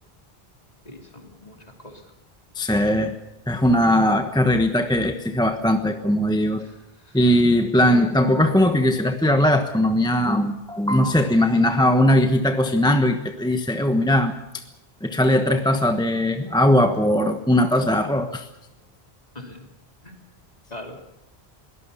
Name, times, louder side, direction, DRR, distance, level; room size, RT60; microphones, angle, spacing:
voice 1, 0.8-2.0 6.6-6.8 7.0-7.2 19.3-19.6 20.0-20.1 20.7-21.0, left 1 dB, 40° left, 2 dB, 3.5 m, -41 dB
voice 2, 2.5-3.2 3.5-6.7 7.1-14.6 15.0-18.5, left 1 dB, 5° left, 6 dB, 1.0 m, -19 dB
23.0 x 18.0 x 7.0 m, 0.91 s
omnidirectional pair, 1.1 m